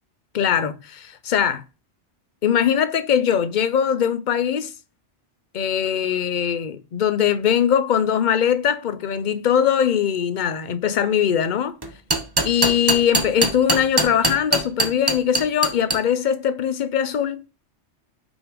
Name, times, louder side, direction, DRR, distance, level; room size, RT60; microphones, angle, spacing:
voice 1, 0.3-1.6 2.4-4.7 5.5-11.8 12.4-17.4, left 8 dB, 50° left, 0.6 m, -21 dB
sound 1, 11.8-16.0, right 2 dB, 20° right, 0.9 m, -21 dB
6.1 x 3.4 x 5.1 m
omnidirectional pair, 1.2 m